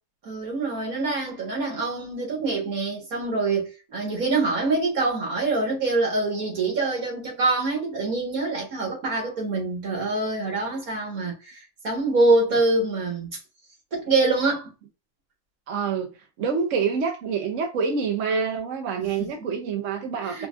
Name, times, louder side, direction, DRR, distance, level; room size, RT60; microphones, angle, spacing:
voice 1, 0.3-13.3 13.9-14.7 20.2-20.5, right 3 dB, 90° right, 2.1 m, -25 dB
voice 2, 15.7-16.1 16.4-20.5, right 5 dB, 65° right, 1.0 m, -26 dB
5.0 x 2.3 x 2.5 m
omnidirectional pair, 1.5 m